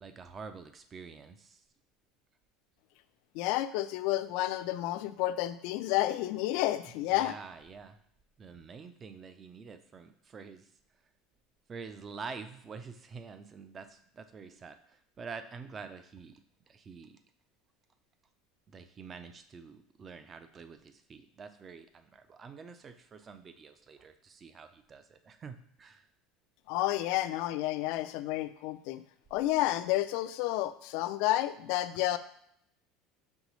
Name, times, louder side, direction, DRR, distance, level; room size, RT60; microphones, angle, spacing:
voice 1, 0.0-1.6 7.1-8.0 8.4-10.7 11.7-16.4 16.7-17.2 18.7-26.1, right 5 dB, 25° right, 10 dB, 0.4 m, -47 dB
voice 2, 3.3-7.3 26.7-29.0 29.3-32.2, left 15 dB, 70° left, 11 dB, 0.3 m, -30 dB
5.3 x 3.1 x 3.1 m, 0.70 s
supercardioid pair, 130°, 0 cm